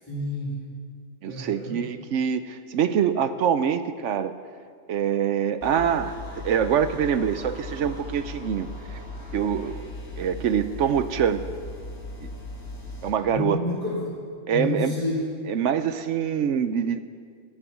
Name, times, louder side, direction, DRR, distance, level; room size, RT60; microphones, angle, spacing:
voice 1, 0.1-0.6 1.2-1.8 13.3-14.2 14.5-15.2, left 1 dB, 15° left, -11 dB, 4.0 m, -29 dB
voice 2, 1.2-4.3 4.9-9.0 9.3-9.7 10.2-11.4 13.0-13.6 14.5-14.9 15.5-17.0, right 8 dB, 70° right, 12 dB, 1.0 m, -25 dB
sound 1, 5.6-13.2, left 2 dB, 55° left, 2.5 m, -38 dB
13.5 x 10.0 x 9.2 m, 2.1 s
omnidirectional pair, 1.3 m